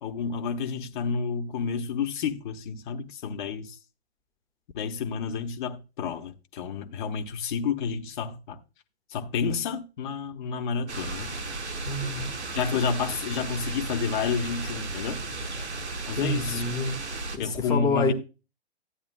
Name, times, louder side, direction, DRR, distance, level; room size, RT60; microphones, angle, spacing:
voice 1, 0.0-3.8 4.7-8.6 9.1-11.3 12.5-15.2 16.1-16.6 17.4-18.1, left 6 dB, 45° left, 1.1 m, -30 dB
sound 1, 10.9-17.4, right 3 dB, 85° right, 1.4 m, -34 dB
voice 2, 11.8-12.3 16.1-18.1, left 3 dB, 10° left, 1.3 m, -28 dB
12.5 x 9.1 x 2.2 m
figure-of-eight pair, 120°, 33 cm